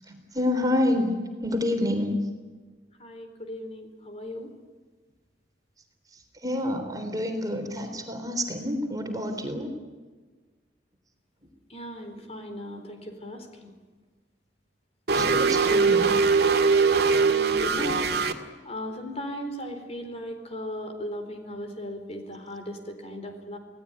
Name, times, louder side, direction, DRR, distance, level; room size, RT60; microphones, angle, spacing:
voice 1, 0.1-1.2 1.4-2.1 6.1-9.7 15.1-16.1, left 1 dB, 20° right, 4 dB, 3.7 m, -28 dB
voice 2, 3.0-4.5 11.7-13.7 15.6-15.9 17.2-18.1 18.6-23.6, equal, 35° left, 5 dB, 4.1 m, -37 dB
sound 1, 15.1-18.3, right 4 dB, 60° right, 2.1 m, -21 dB
27.5 x 18.5 x 9.9 m, 1.4 s
head